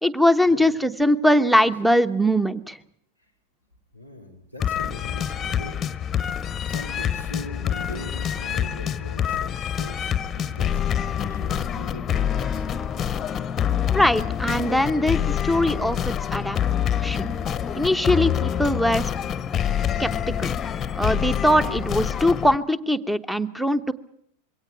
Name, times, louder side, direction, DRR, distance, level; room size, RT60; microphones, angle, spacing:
voice 1, 0.0-2.8 13.9-16.6 17.0-17.3 17.7-19.1 20.0-20.6 20.9-23.9, left 1 dB, ahead, 17 dB, 0.9 m, -21 dB
voice 2, 3.9-5.8 6.7-13.1, equal, 85° right, 5 dB, 3.3 m, -41 dB
sound 1, 4.6-22.6, left 9 dB, 25° left, 0.9 m, -26 dB
22.5 x 17.5 x 9.0 m, 0.70 s
figure-of-eight pair, 90°, 0 cm